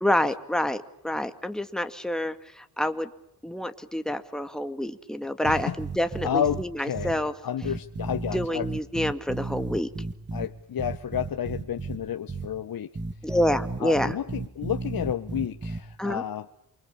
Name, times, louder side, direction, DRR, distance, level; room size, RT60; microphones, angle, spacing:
voice 1, 0.0-3.1 3.4-7.3 8.3-9.9 13.2-14.1 16.0-16.2, left 1 dB, ahead, 8 dB, 2.2 m, -28 dB
voice 2, 5.4-5.8 6.2-8.7 10.3-12.9 13.8-16.5, left 9 dB, 65° left, 9 dB, 1.2 m, -31 dB
sound 1, 5.4-6.6 6.9-7.1 7.6-10.5 10.8-12.0 12.3-12.5 12.9-15.8, right 3 dB, 30° right, 3.1 m, -33 dB
28.5 x 24.5 x 7.2 m, 0.77 s
cardioid pair, 85°, 38 cm